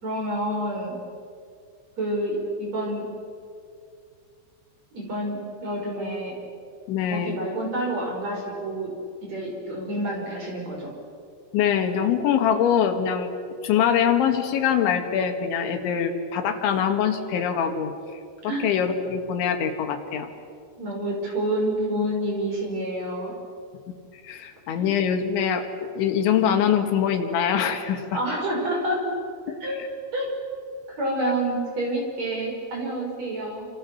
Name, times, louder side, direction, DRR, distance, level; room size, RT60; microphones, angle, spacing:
voice 1, 0.0-1.0 2.0-3.0 4.9-6.3 7.1-8.9 9.3-10.9 18.5-18.7 20.8-23.3 24.8-24.9 28.1-29.1 29.6-29.8 30.1-30.3 31.0-33.7, right 1 dB, 35° right, 0 dB, 6.7 m, -28 dB
voice 2, 6.9-7.4 11.5-13.3 13.6-17.9 18.4-20.3 24.2-28.2 29.8-29.9, left 8 dB, 75° left, 6 dB, 4.1 m, -23 dB
28.5 x 28.0 x 7.1 m, 2.3 s
omnidirectional pair, 5.4 m